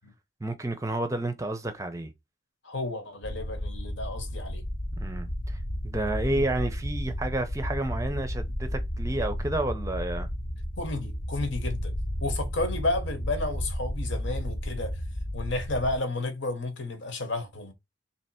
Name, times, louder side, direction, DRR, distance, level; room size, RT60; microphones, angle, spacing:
voice 1, 0.4-2.1 5.0-10.3, right 2 dB, 15° right, 0.5 m, -30 dB
voice 2, 2.6-4.6 6.3-6.5 10.8-11.9 12.2-15.0 15.3-17.7, left 2 dB, 80° left, 1.1 m, -32 dB
sound 1, 3.2-16.0, equal, 50° left, 0.8 m, -33 dB
3.3 x 2.8 x 4.2 m
head